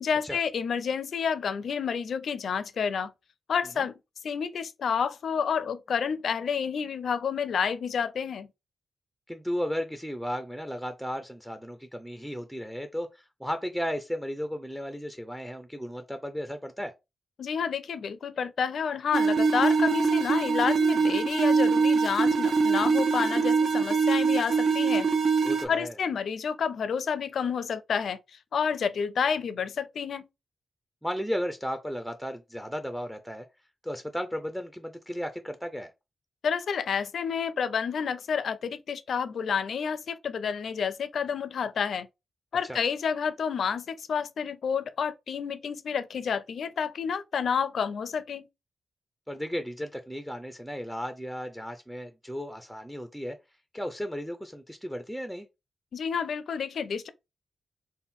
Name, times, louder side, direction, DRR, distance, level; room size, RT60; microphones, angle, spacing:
voice 1, 0.0-3.1 3.5-3.9 4.2-8.5 17.4-25.1 25.7-28.2 28.5-30.2 36.4-42.1 42.5-48.5 55.9-57.1, left 6 dB, 70° left, 0.4 m, -29 dB
voice 2, 9.3-16.9 25.4-26.0 31.0-33.5 33.8-35.9 42.6-42.8 49.3-53.4 53.7-55.5, equal, ahead, 0.4 m, -34 dB
sound 1, 19.1-25.6, right 4 dB, 70° right, 0.7 m, -23 dB
4.1 x 2.1 x 3.6 m
wide cardioid pair, 130°, 0 cm